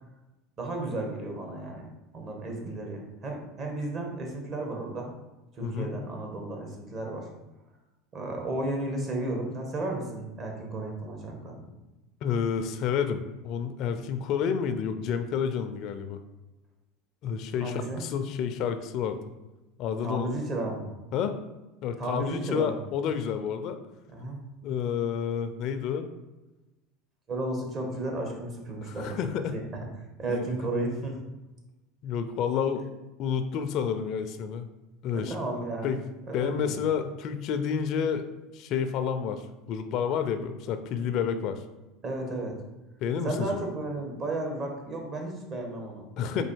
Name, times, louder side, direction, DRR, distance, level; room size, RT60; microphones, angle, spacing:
voice 1, 0.6-1.9 2.1-5.1 5.5-7.3 8.1-11.6 17.6-18.0 20.0-20.9 22.0-22.8 24.1-24.4 27.3-29.2 29.5-29.6 30.2-31.1 35.1-35.9 36.3-36.8 42.0-42.6 43.2-46.1 46.3-46.4, right 2 dB, 40° right, 1 dB, 1.2 m, -33 dB
voice 2, 5.6-6.0 12.2-16.2 17.2-19.2 19.8-20.3 21.1-21.4 21.8-23.8 24.6-26.1 28.8-29.6 30.3-30.5 32.0-32.9 33.2-34.7 35.0-35.3 35.8-36.0 36.3-38.2 38.5-39.4 39.7-41.6 43.0-43.6 46.2-46.4, left 7 dB, 55° left, 9 dB, 0.4 m, -29 dB
4.2 x 2.7 x 4.5 m, 1.0 s
supercardioid pair, 105°, 0 cm